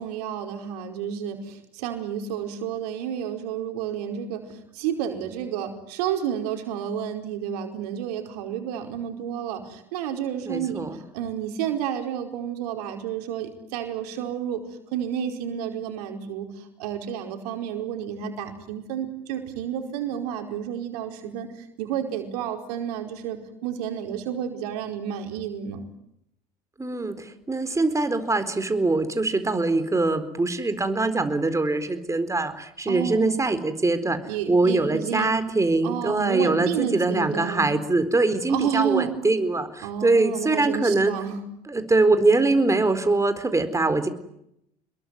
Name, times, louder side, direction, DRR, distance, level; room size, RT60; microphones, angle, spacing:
voice 1, 0.0-10.9 11.1-14.6 14.9-25.8 32.9-33.4 34.3-35.3 35.8-37.7 38.5-39.1 39.8-41.4, right 9 dB, 75° right, 5 dB, 4.9 m, -30 dB
voice 2, 10.4-11.0 26.8-34.2 34.5-41.1 41.7-44.1, right 2 dB, 15° right, 10 dB, 4.4 m, -23 dB
28.0 x 22.5 x 9.5 m, 0.76 s
hypercardioid pair, 70°, 20 cm